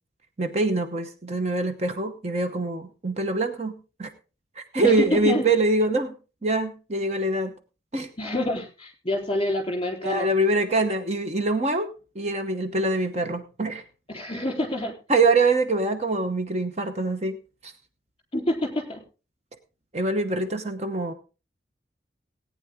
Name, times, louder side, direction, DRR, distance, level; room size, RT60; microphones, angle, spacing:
voice 1, 0.4-4.1 4.6-6.1 6.4-7.5 7.9-8.1 10.0-11.9 12.1-13.8 15.1-17.4 17.6-17.7 19.9-21.1, right 2 dB, 40° right, 7 dB, 1.0 m, -24 dB
voice 2, 4.8-5.4 8.2-10.3 14.1-14.9 18.3-19.0, left 1 dB, 30° left, 1 dB, 3.6 m, -27 dB
17.5 x 9.2 x 3.6 m, 0.33 s
head